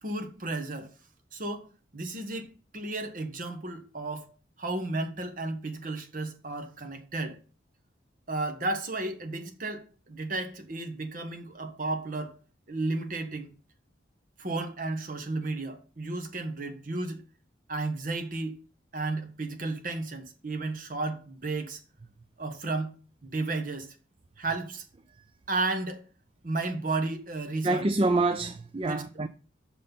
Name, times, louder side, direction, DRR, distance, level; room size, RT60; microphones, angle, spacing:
voice 1, 0.0-0.9 1.3-4.3 4.6-7.4 8.3-12.4 12.7-13.5 14.4-17.2 17.7-18.6 18.9-21.8 22.4-22.9 23.2-23.9 24.4-24.9 25.5-26.0 26.4-27.9 28.8-29.1, right 2 dB, 45° right, 1.2 m, -33 dB
voice 2, 27.6-29.3, right 2 dB, 30° right, 0.4 m, -26 dB
6.4 x 5.9 x 5.5 m
head